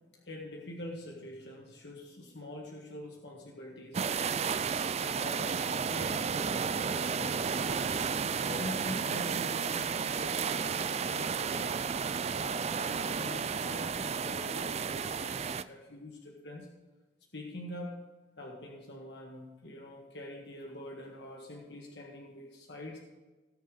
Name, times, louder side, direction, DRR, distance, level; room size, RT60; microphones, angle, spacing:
voice 1, 0.3-12.0 12.4-16.7 17.3-18.0 18.4-23.0, left 1 dB, 60° left, -1 dB, 1.8 m, -45 dB
sound 1, 3.9-15.6, right 6 dB, 35° right, 0.4 m, -32 dB
18.5 x 6.6 x 4.0 m, 1.3 s
head